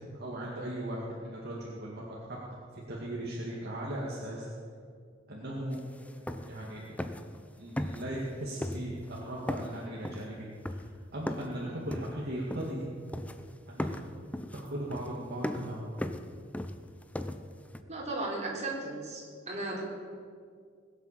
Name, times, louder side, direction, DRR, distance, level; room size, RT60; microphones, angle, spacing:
voice 1, 0.1-2.4 2.9-4.5 5.3-5.8 6.4-6.8 7.6-10.8 11.1-12.9 13.7-14.0 14.5-15.9, right 1 dB, 55° right, -4 dB, 2.2 m, -38 dB
sound 1, 5.7-5.8 6.1-6.7 7.0-7.4 7.8-8.3 8.6-9.2 9.5-11.6 11.9-12.9 13.1-13.5 13.8-17.8, left 1 dB, 5° left, 0.6 m, -37 dB
voice 2, 17.9-19.8, right 2 dB, 35° right, -3 dB, 4.1 m, -36 dB
20.5 x 8.2 x 7.5 m, 2.1 s
head